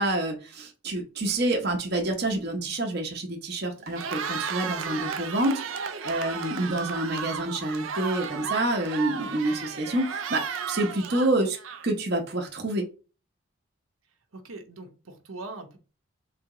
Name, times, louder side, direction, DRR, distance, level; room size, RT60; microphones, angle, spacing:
voice 1, 0.0-5.6 6.0-11.6 11.8-12.9, right 1 dB, 50° right, 2 dB, 0.8 m, -28 dB
Cheering, 3.8-12.1, right 6 dB, 70° right, 0.5 m, -34 dB
voice 2, 14.3-15.8, right 2 dB, 85° right, 3 dB, 0.9 m, -41 dB
3.5 x 2.9 x 4.7 m, 0.34 s
head